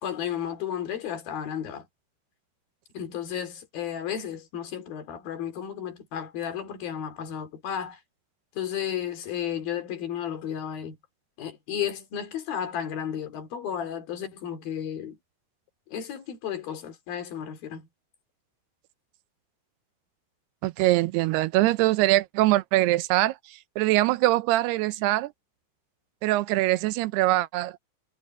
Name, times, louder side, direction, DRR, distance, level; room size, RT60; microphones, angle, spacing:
voice 1, 0.0-1.8 2.9-8.0 8.6-11.0 11.4-15.2 15.9-17.9, left 9 dB, 60° left, 4.3 m, -33 dB
voice 2, 20.6-23.4 23.8-25.3 26.2-27.8, right 17 dB, 80° right, 2.6 m, -23 dB
omnidirectional pair, 5.0 m